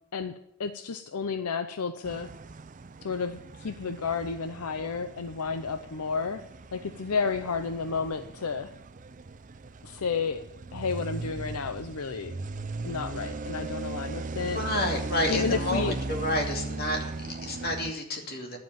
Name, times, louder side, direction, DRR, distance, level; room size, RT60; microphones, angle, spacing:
voice 1, 0.6-2.3 3.0-6.4 6.7-8.7 9.8-10.4 10.7-12.3 12.8-14.6 15.3-16.0, left 5 dB, 90° left, 10 dB, 0.6 m, -31 dB
sound 1, 2.0-17.9, right 3 dB, 35° right, 0.5 m, -38 dB
voice 2, 14.4-18.6, left 1 dB, 45° left, 2 dB, 2.6 m, -30 dB
11.5 x 7.8 x 9.1 m, 0.81 s
head